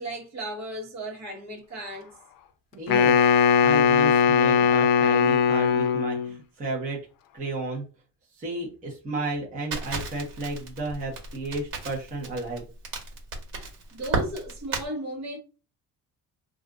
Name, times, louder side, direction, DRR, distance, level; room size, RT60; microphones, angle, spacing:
voice 1, 0.0-2.2 13.9-15.4, right 1 dB, 55° right, 1.2 m, -35 dB
voice 2, 2.7-7.0 7.3-7.9 8.3-12.6, right 2 dB, 25° right, 0.8 m, -33 dB
Wind instrument woodwind instrument, 2.9-6.4, left 6 dB, 75° left, 0.5 m, -20 dB
Crackle, 9.7-14.9, right 3 dB, 90° right, 1.4 m, -33 dB
2.5 x 2.4 x 3.5 m
cardioid pair, 160°, 33 cm